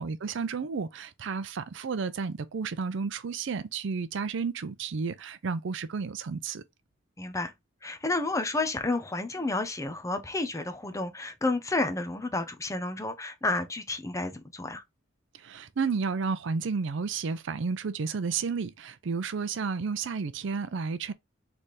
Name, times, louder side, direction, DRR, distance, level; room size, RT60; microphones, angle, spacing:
voice 1, 0.0-6.6 15.3-21.1, right 5 dB, 65° right, 0.5 m, -32 dB
voice 2, 7.2-7.5 7.8-14.8, left 2 dB, 15° left, 0.6 m, -31 dB
4.1 x 3.4 x 3.1 m
head